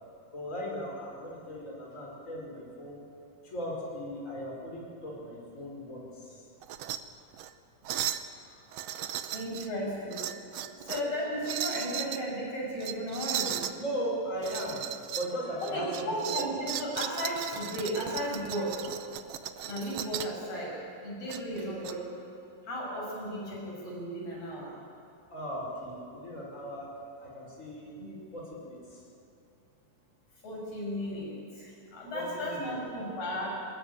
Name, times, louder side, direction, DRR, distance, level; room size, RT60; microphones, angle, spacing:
voice 1, 0.3-3.0 3.4-6.4 8.4-9.1 13.8-14.8 15.2-16.1 16.4-16.5 25.3-26.9 27.2-27.9 28.3-29.0 32.1-32.7, equal, 20° left, -3 dB, 5.5 m, -38 dB
sound 1, 6.6-7.0 7.3-7.5 7.9-8.3 8.7-9.7 10.1-11.1 11.4-12.2 12.8-13.8 14.4-15.3 15.6-20.4 21.3-21.9, right 11 dB, 85° right, 1.4 m, -36 dB
voice 2, 9.3-10.3 10.7-13.6 15.6-18.9 19.7-22.2 22.6-24.7 28.0-28.2 30.4-33.5, equal, 45° left, -3 dB, 7.8 m, -35 dB
21.0 x 20.5 x 8.9 m, 2.7 s
omnidirectional pair, 3.9 m